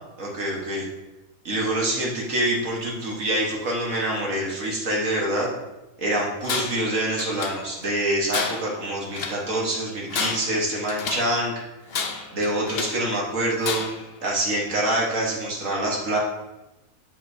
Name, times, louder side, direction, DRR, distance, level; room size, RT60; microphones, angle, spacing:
voice 1, 0.2-0.8 1.5-5.5 6.0-11.5 12.3-13.8 14.2-16.2, right 1 dB, 60° right, -2 dB, 1.7 m, -25 dB
Tools, 6.4-6.9 7.2-7.9 8.3-9.4 10.0-11.3 11.9-13.1 13.6-14.1, left 5 dB, 55° left, 0.8 m, -31 dB
7.5 x 7.5 x 2.7 m, 0.99 s
omnidirectional pair, 1.5 m